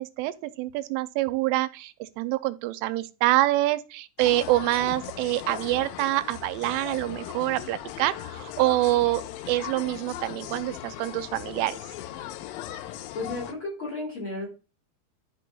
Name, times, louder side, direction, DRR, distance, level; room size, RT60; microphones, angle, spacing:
voice 1, 0.0-11.8, right 17 dB, 90° right, 3.0 m, -26 dB
sound 1, 4.2-13.5, left 13 dB, 85° left, 2.5 m, -38 dB
voice 2, 12.8-14.5, left 2 dB, 35° left, 2.4 m, -34 dB
13.0 x 5.5 x 2.3 m
omnidirectional pair, 5.4 m